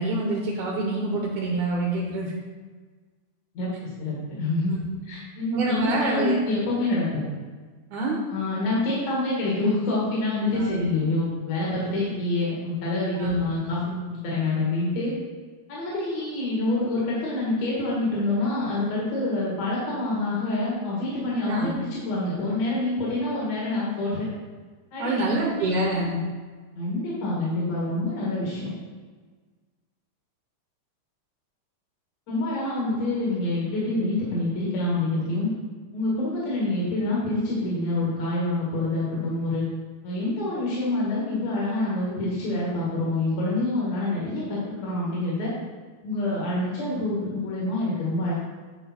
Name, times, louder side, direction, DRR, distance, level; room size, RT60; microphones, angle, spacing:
voice 1, 0.0-2.3 4.7-5.0 5.5-6.4 7.9-8.2 10.5-10.8 13.1-13.4 21.5-21.7 25.0-26.2, right 2 dB, 75° right, -2 dB, 2.4 m, -26 dB
voice 2, 3.5-4.8 5.0-7.2 8.3-15.1 15.7-24.3 24.9-25.7 26.8-28.7 32.3-35.5 35.9-39.6 40.0-45.5 46.0-48.3, left 2 dB, 65° left, -6 dB, 3.0 m, -26 dB
9.3 x 5.1 x 4.4 m, 1.4 s
omnidirectional pair, 3.5 m